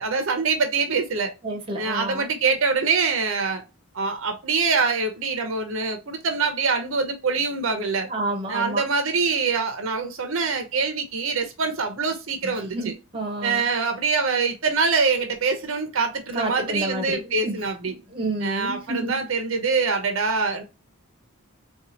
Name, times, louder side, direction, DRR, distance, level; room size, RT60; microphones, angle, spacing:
voice 1, 0.0-1.3 1.8-3.6 3.9-8.1 8.5-12.9 13.4-17.9 18.4-20.6, right 4 dB, 60° right, 0.6 m, -24 dB
voice 2, 1.4-2.3 8.1-8.8 12.4-13.7 16.3-17.6 18.1-19.2, right 1 dB, 25° right, 0.8 m, -30 dB
4.0 x 2.3 x 2.7 m
head